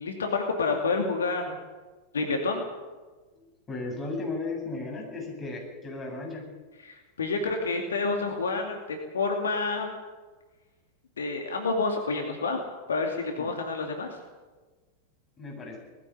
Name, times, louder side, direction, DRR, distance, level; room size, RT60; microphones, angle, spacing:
voice 1, 0.0-1.6 2.1-2.6 6.8-9.9 11.2-12.6 12.9-14.2, left 3 dB, 70° left, 3 dB, 2.5 m, -29 dB
voice 2, 3.3-6.5 13.4-13.6 15.4-15.8, left 3 dB, 20° left, 0 dB, 8.0 m, -35 dB
20.0 x 15.0 x 9.2 m, 1.3 s
figure-of-eight pair, 90°, 0 cm